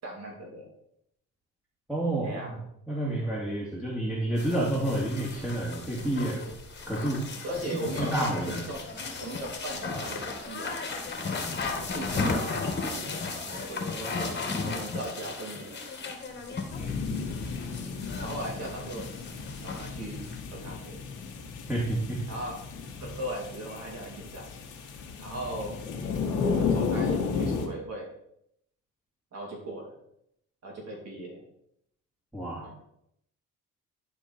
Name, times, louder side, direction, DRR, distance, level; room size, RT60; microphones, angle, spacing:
voice 1, 0.0-0.7 2.2-2.6 7.4-8.8 9.2-10.8 11.7-14.3 14.6-15.8 18.2-19.0 19.6-21.0 22.3-22.6 23.0-24.5 25.2-25.8 26.6-28.1 29.3-29.9 30.6-31.4 32.6-32.7, right 1 dB, 60° right, -1 dB, 3.0 m, -38 dB
voice 2, 1.9-2.6 2.9-6.5 6.9-7.2 8.0-8.6 16.8-17.3 21.7-22.2 32.3-32.8, right 1 dB, 5° right, -5 dB, 2.2 m, -30 dB
sound 1, 4.4-20.4, left 4 dB, 35° left, 1.8 m, -35 dB
sound 2, 16.7-27.7, left 5 dB, 85° left, 1.7 m, -33 dB
11.0 x 4.6 x 4.4 m, 0.74 s
cardioid pair, 90°, 30 cm